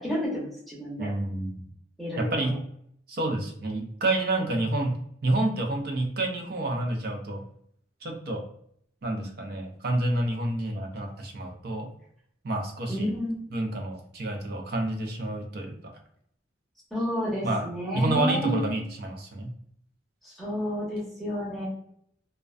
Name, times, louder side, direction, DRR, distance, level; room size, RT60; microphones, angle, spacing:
voice 1, 0.0-1.1 2.0-2.6 12.9-13.5 16.9-18.7 20.2-21.7, equal, ahead, -7 dB, 0.7 m, -30 dB
voice 2, 1.0-1.6 2.2-2.6 3.1-7.4 8.0-8.4 9.0-11.9 12.4-13.1 13.5-15.7 17.4-17.7 17.9-19.5, right 2 dB, 55° right, 2 dB, 0.5 m, -29 dB
2.4 x 2.1 x 2.3 m, 0.68 s
head